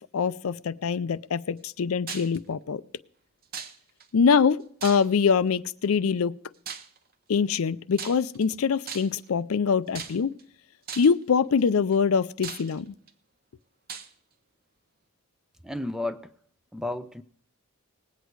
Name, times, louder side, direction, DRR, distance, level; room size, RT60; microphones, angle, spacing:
voice 1, 0.1-2.8 4.1-6.3 7.3-10.3 11.0-12.9, left 6 dB, 80° left, 0.5 m, -24 dB
sound 1, 2.1-2.4 3.5-4.1 4.8-5.3 6.7-7.0 7.9-8.5 8.9-9.3 10.0-10.4 10.9-11.2 11.9-12.0 12.4-13.1 13.9-14.1, right 7 dB, 45° right, 0.9 m, -38 dB
voice 2, 15.6-16.3 16.7-17.2, left 2 dB, 5° right, 0.4 m, -32 dB
19.5 x 8.3 x 4.7 m
head